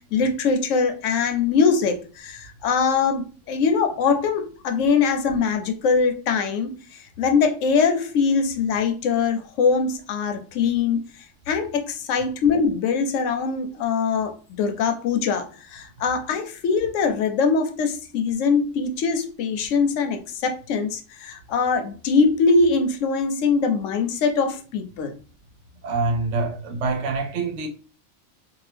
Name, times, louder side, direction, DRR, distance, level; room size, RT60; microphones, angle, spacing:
voice 1, 0.1-11.1 11.5-25.1, left 5 dB, 80° left, 0.9 m, -22 dB
voice 2, 25.8-27.7, right 3 dB, 70° right, 0.9 m, -25 dB
2.7 x 2.4 x 3.3 m
omnidirectional pair, 1.3 m